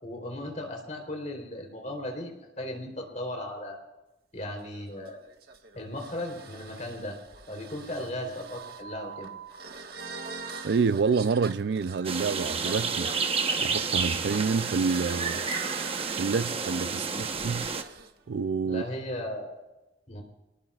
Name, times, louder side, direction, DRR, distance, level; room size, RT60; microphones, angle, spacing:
voice 1, 0.0-3.8 4.3-5.2 5.7-7.2 7.5-9.3 17.0-17.3 18.6-19.6 20.1-20.2, left 1 dB, 40° left, 3.6 m, -36 dB
sound 1, 4.4-18.1, right 4 dB, 60° right, 1.5 m, -44 dB
voice 2, 10.6-13.1 13.6-15.4 16.2-17.7 18.3-18.8, right 5 dB, 75° right, 0.4 m, -28 dB
sound 2, 12.0-17.8, right 5 dB, 35° right, 1.0 m, -30 dB
25.5 x 19.5 x 2.4 m
head